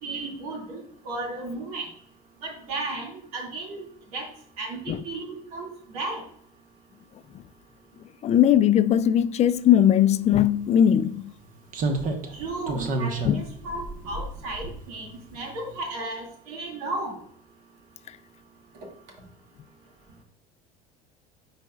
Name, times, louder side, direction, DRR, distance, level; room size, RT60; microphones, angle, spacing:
voice 1, 0.0-1.9 2.4-3.8 4.1-4.3 4.6-5.7 5.9-6.2 12.3-17.2, right 2 dB, 80° right, 2.2 m, -34 dB
voice 2, 8.2-11.3 13.2-13.4, left 10 dB, 35° left, 0.4 m, -19 dB
Slam, 10.3-10.4 11.7-15.2 15.5-15.7, right 2 dB, 45° right, 1.2 m, -31 dB
9.7 x 4.2 x 2.4 m
supercardioid pair, 90°, 19 cm